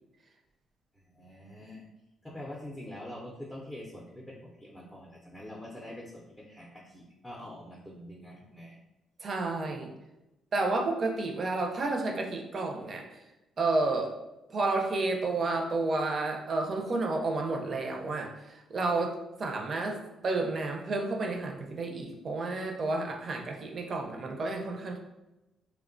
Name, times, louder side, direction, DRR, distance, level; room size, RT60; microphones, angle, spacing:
voice 1, 1.0-1.8 2.2-8.8, left 1 dB, 10° left, -4 dB, 0.5 m, -45 dB
voice 2, 9.2-9.9 10.5-13.0 13.6-14.1 14.5-25.0, right 3 dB, 50° right, 2 dB, 0.5 m, -31 dB
3.1 x 2.1 x 2.5 m, 0.98 s
cardioid pair, 90°, 0 cm